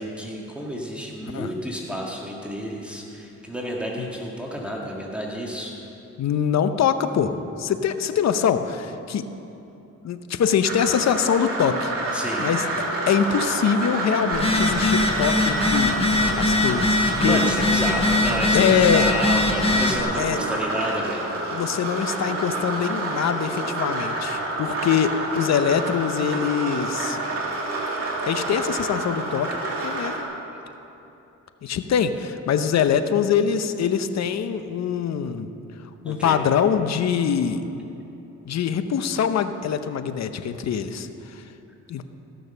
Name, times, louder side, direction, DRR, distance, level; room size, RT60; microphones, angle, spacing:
voice 1, 0.0-5.7 12.1-12.5 17.2-21.6 30.5-30.6 36.0-36.4, equal, 5° right, -3 dB, 1.8 m, -30 dB
voice 2, 6.2-9.2 10.0-12.6 13.1-16.0 16.3-17.4 18.5-19.1 19.9-20.4 21.5-27.2 28.3-30.2 31.6-35.5 35.8-37.6 38.4-41.5 41.9-42.0, left 7 dB, 55° left, 10 dB, 0.8 m, -24 dB
sound 1, 10.6-30.2, right 2 dB, 45° right, 2.3 m, -28 dB
Telephone, 14.3-20.0, left 2 dB, 20° left, 1.3 m, -22 dB
15.0 x 6.5 x 6.7 m, 2.9 s
cardioid pair, 80°, 31 cm